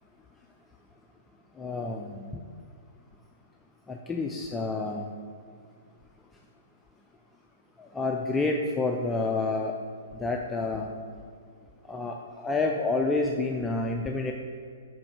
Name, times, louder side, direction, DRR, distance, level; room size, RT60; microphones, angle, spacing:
voice 1, 1.6-2.3 3.9-5.1 7.8-9.7 10.1-10.9 11.9-14.3, left 3 dB, 10° left, 1 dB, 0.3 m, -29 dB
4.9 x 4.7 x 4.6 m, 2.1 s
figure-of-eight pair, 115°, 0 cm